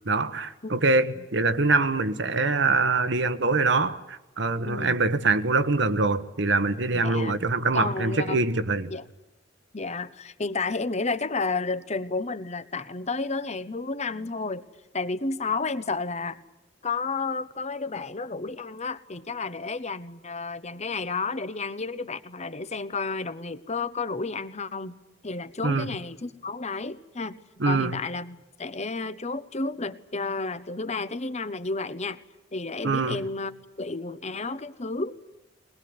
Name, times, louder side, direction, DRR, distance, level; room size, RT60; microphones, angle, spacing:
voice 1, 0.0-8.9 25.6-25.9 27.6-27.9 32.8-33.2, right 3 dB, 65° right, 1.3 m, -24 dB
voice 2, 4.7-5.0 6.9-7.3 7.7-8.4 8.9-9.0 9.7-14.7 14.9-16.4 16.8-25.0 25.2-27.4 27.6-32.2 32.5-35.2, left 3 dB, 35° left, 1.1 m, -31 dB
22.0 x 20.5 x 9.7 m
head